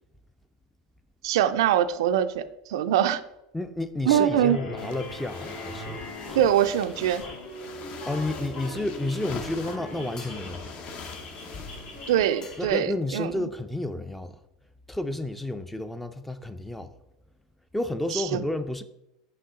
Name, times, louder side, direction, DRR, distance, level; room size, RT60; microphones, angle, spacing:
voice 1, 1.2-2.4 2.7-3.2 4.1-4.6 6.4-7.2 12.1-13.3 18.1-18.4, right 10 dB, 75° right, 0.4 m, -23 dB
voice 2, 3.5-6.4 8.0-10.8 12.6-14.3 14.9-16.9 17.7-18.8, left 2 dB, 5° left, 0.5 m, -31 dB
sound 1, 4.1-12.7, left 1 dB, 60° left, 2.3 m, -40 dB
sound 2, 4.8-12.6, left 5 dB, 45° left, 0.9 m, -43 dB
sound 3, 10.2-11.0 12.1-12.2 12.4-13.0, left 3 dB, 30° left, 2.3 m, -49 dB
5.6 x 5.4 x 3.7 m
hypercardioid pair, 90°, 3 cm